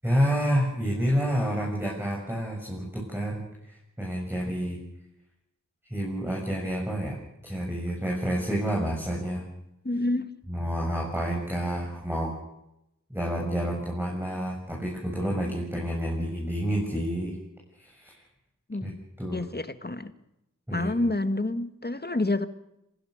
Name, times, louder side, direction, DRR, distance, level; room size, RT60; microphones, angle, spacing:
voice 1, 0.0-4.8 5.8-7.2 7.4-9.4 10.5-12.3 13.1-17.3 17.8-18.1 18.8-19.4 20.7-20.9, equal, 5° right, -2 dB, 6.9 m, -29 dB
voice 2, 9.8-10.3 18.7-19.0 19.3-20.1 20.7-22.5, left 2 dB, 30° left, 11 dB, 1.6 m, -28 dB
26.5 x 19.0 x 6.6 m, 0.85 s
wide cardioid pair, 55°, 31 cm